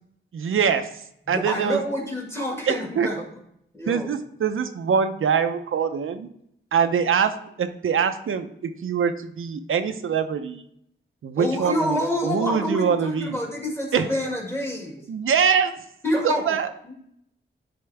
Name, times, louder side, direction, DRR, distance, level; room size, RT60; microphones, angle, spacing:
voice 1, 0.3-0.9 1.3-1.8 2.7-3.1 3.9-6.3 6.7-10.6 11.2-12.0 12.2-13.4 13.9-14.0 15.1-15.8 16.2-16.7, right 7 dB, 85° right, 8 dB, 0.6 m, -23 dB
voice 2, 1.2-3.3 3.7-4.2 11.4-15.1 16.0-16.6 16.8-16.9, left 1 dB, 10° left, 0 dB, 1.8 m, -27 dB
10.5 x 4.3 x 3.3 m, 0.73 s
wide cardioid pair, 125°, 20 cm